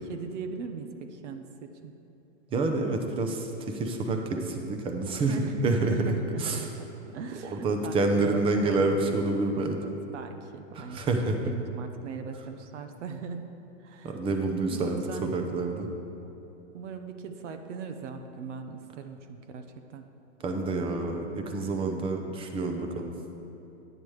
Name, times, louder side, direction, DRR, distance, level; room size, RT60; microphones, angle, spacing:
voice 1, 0.0-1.9 5.2-9.2 9.8-11.0 11.4-13.5 13.8-14.2 14.7-15.4 16.2-16.3 16.7-20.1, right 5 dB, 70° right, 6 dB, 0.8 m, -39 dB
voice 2, 2.5-6.1 6.4-6.7 7.5-9.8 10.8-11.4 14.0-15.9 20.4-23.1, right 3 dB, 15° right, 4 dB, 0.5 m, -28 dB
9.9 x 8.9 x 3.2 m, 3.0 s
hypercardioid pair, 140°, 37 cm